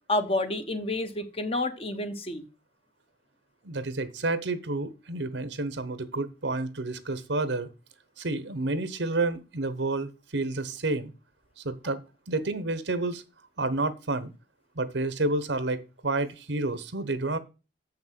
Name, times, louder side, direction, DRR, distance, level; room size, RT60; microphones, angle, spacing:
voice 1, 0.1-2.4, left 2 dB, 30° left, 1.0 m, -29 dB
voice 2, 3.6-7.7 8.2-11.1 11.6-12.0 12.3-13.2 13.6-14.3 14.8-17.4, right 2 dB, 65° right, 1.0 m, -30 dB
7.2 x 6.0 x 7.5 m
head